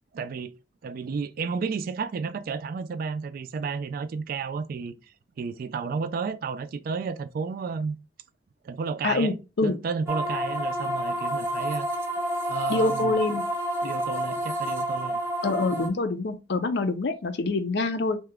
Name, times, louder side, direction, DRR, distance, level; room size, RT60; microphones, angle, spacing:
voice 1, 0.1-0.5 0.8-4.9 5.4-8.0 8.6-9.3 9.6-11.9 12.5-13.2 13.8-15.2, right 5 dB, 55° right, 0.3 m, -32 dB
voice 2, 9.0-9.8 12.7-13.4 15.4-18.2, left 3 dB, 65° left, 0.5 m, -26 dB
sound 1, 10.1-15.9, right 1 dB, 15° right, 0.7 m, -29 dB
2.8 x 2.3 x 3.5 m
head